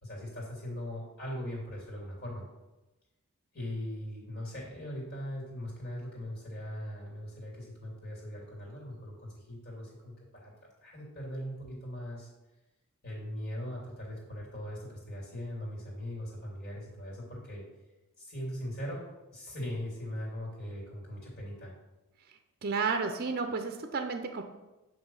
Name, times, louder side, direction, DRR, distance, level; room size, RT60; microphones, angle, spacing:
voice 1, 0.0-2.5 3.5-10.1 10.4-10.5 10.8-12.3 13.0-17.6 18.2-19.0 19.3-21.7, left 1 dB, 45° left, -3 dB, 2.6 m, -40 dB
voice 2, 22.6-24.4, right 4 dB, 45° right, 6 dB, 0.5 m, -31 dB
8.1 x 3.2 x 5.4 m, 1.1 s
head